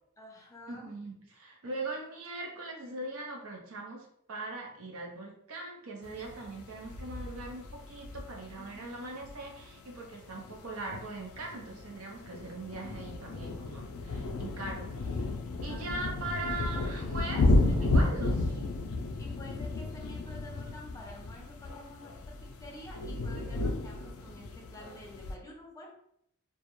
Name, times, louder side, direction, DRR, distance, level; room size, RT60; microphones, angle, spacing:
voice 1, 0.2-0.9 8.5-9.1 15.7-16.1 17.7-18.7 19.2-26.0, left 1 dB, 15° left, -1 dB, 0.5 m, -49 dB
voice 2, 0.7-15.3 15.6-18.4, right 2 dB, 75° right, 1 dB, 0.6 m, -40 dB
sound 1, 6.0-25.3, left 2 dB, 80° left, 0.3 m, -33 dB
2.3 x 2.1 x 2.9 m, 0.70 s
head